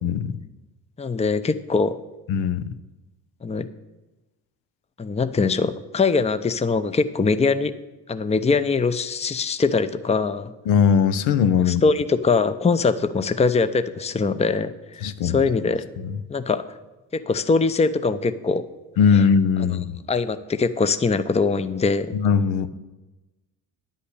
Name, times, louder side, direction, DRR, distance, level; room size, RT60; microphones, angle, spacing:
voice 1, 0.0-0.4 2.3-2.6 10.7-11.8 15.0-15.7 16.0-16.2 19.0-20.0 22.1-22.7, left 6 dB, 75° left, 11 dB, 0.8 m, -20 dB
voice 2, 1.0-2.0 3.4-3.7 5.0-7.7 8.1-10.5 11.7-15.8 16.3-16.7 17.1-18.6 19.1-19.2 20.1-22.1, left 4 dB, 15° left, 12 dB, 0.6 m, -22 dB
10.0 x 5.6 x 8.3 m, 1.1 s
hypercardioid pair, 55°, 47 cm